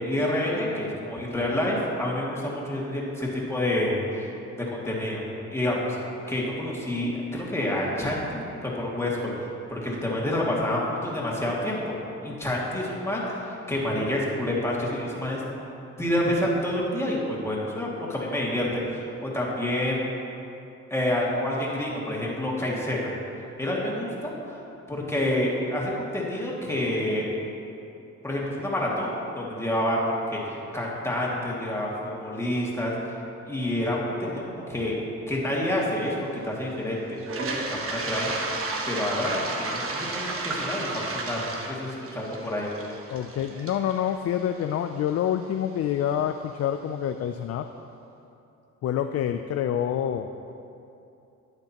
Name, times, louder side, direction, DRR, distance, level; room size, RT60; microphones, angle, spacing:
voice 1, 0.0-4.3 4.6-6.0 6.3-9.3 9.7-12.0 12.2-15.4 16.0-20.0 20.9-23.1 23.6-24.6 24.9-27.3 28.2-32.9 33.5-35.0 35.3-38.3 38.9-42.7, left 1 dB, 10° left, -5 dB, 2.2 m, -28 dB
Toilet flush, 37.2-45.1, right 3 dB, 50° right, 1.1 m, -33 dB
voice 2, 43.1-47.7 48.8-50.3, left 9 dB, 55° left, 7 dB, 0.4 m, -27 dB
11.5 x 8.9 x 2.9 m, 2.8 s
cardioid pair, 90°, 30 cm